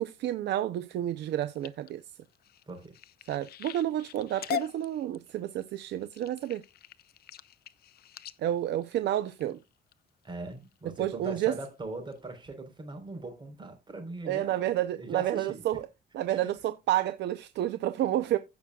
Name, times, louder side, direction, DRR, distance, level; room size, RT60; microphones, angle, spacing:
voice 1, 0.0-2.0 3.3-6.6 8.4-9.6 11.0-11.6 14.3-15.8 16.1-18.4, right 12 dB, 80° right, 0.7 m, -30 dB
sound 1, 1.2-9.9 10.5-10.9 11.3-11.7 12.1-12.2 12.5-12.6, left 9 dB, 65° left, 0.7 m, -42 dB
voice 2, 10.2-15.6 16.3-16.5, right 2 dB, 25° right, 4.1 m, -41 dB
16.0 x 6.2 x 2.3 m
cardioid pair, 120°, 18 cm